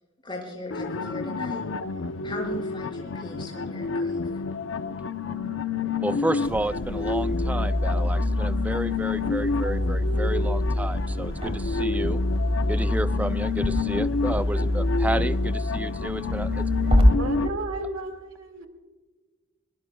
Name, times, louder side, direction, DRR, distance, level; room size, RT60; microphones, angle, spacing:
voice 1, 0.2-1.6 2.2-4.4, left 1 dB, 25° left, -1 dB, 5.2 m, -38 dB
sound 1, 0.7-17.5, left 4 dB, 70° left, 0.6 m, -30 dB
voice 2, 6.0-12.2 12.7-16.7, right 1 dB, 5° right, 12 dB, 0.4 m, -31 dB
sound 2, 6.4-17.0, left 1 dB, 30° right, 2.4 m, -26 dB
voice 3, 17.2-18.7, right 2 dB, 85° right, 6 dB, 2.0 m, -33 dB
22.0 x 21.5 x 2.3 m, 1.4 s
head